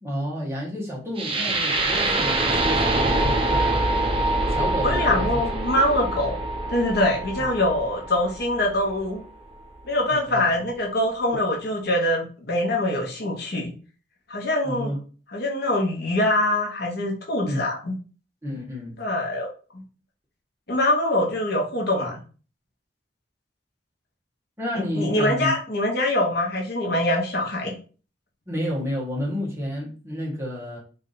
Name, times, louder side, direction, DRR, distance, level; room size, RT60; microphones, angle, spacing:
voice 1, 0.0-3.8 4.5-5.5 7.4-7.5 10.1-10.5 14.6-15.0 17.4-17.7 18.4-18.9 24.6-25.5 28.5-30.8, equal, 15° right, 1.2 m, -30 dB
sound 1, 1.2-9.2, right 2 dB, 30° right, 0.5 m, -25 dB
voice 2, 4.8-6.4 6.7-9.2 9.8-13.7 14.3-14.9 15.3-17.9 19.0-19.5 19.7-19.8 20.7-22.2 24.7-27.7, left 1 dB, 60° left, 1.0 m, -24 dB
3.3 x 2.6 x 3.9 m
head